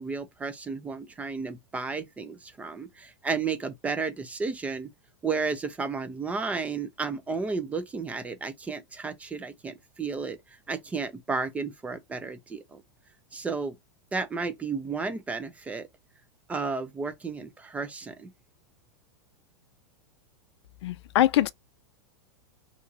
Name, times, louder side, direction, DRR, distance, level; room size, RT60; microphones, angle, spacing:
voice 1, 0.0-4.9 5.2-12.8 13.3-13.8 14.1-15.9 16.5-18.3, right 4 dB, 10° right, 0.3 m, -33 dB
voice 2, 20.8-21.5, left 13 dB, 75° left, 0.4 m, -23 dB
3.0 x 2.4 x 3.9 m
supercardioid pair, 150°, 14 cm